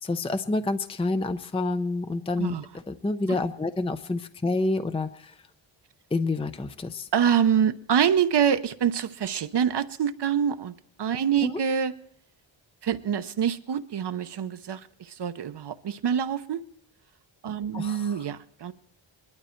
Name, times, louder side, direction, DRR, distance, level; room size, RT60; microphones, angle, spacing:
voice 1, 0.0-2.6 2.9-5.3 6.1-7.1 11.4-11.5 17.7-18.2, left 2 dB, 10° left, 9 dB, 0.6 m, -28 dB
voice 2, 7.1-11.9 12.8-16.6 17.4-18.7, right 8 dB, 60° right, 10 dB, 0.9 m, -26 dB
21.0 x 12.0 x 4.5 m, 0.66 s
cardioid pair, 80°, 47 cm